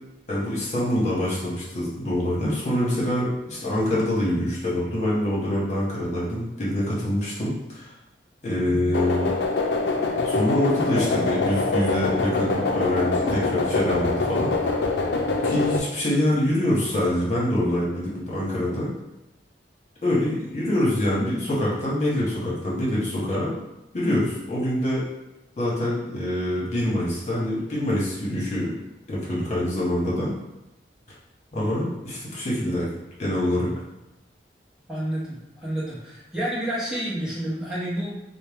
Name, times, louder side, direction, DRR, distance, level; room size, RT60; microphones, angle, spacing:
voice 1, 0.3-7.9 8.4-9.3 10.2-14.5 15.4-18.9 20.0-23.5 23.9-25.1 25.6-28.7 29.1-30.3 31.5-32.9 33.2-33.7, left 1 dB, 40° left, -6 dB, 1.2 m, -25 dB
sound 1, 8.9-15.8, left 3 dB, 80° left, 0.5 m, -24 dB
voice 2, 34.9-38.2, right 1 dB, 5° right, -9 dB, 0.9 m, -30 dB
4.2 x 2.2 x 3.5 m, 0.95 s
head